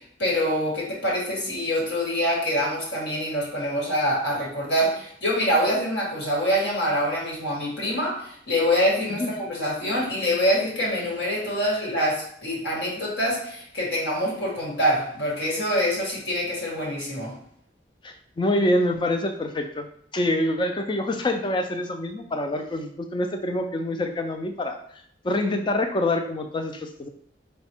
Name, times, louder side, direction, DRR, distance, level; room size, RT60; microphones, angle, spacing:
voice 1, 0.2-17.3, equal, 80° left, -4 dB, 1.6 m, -25 dB
voice 2, 18.0-19.9 20.1-24.8 25.2-27.1, left 1 dB, 25° left, 6 dB, 0.4 m, -26 dB
4.0 x 2.2 x 4.3 m, 0.66 s
head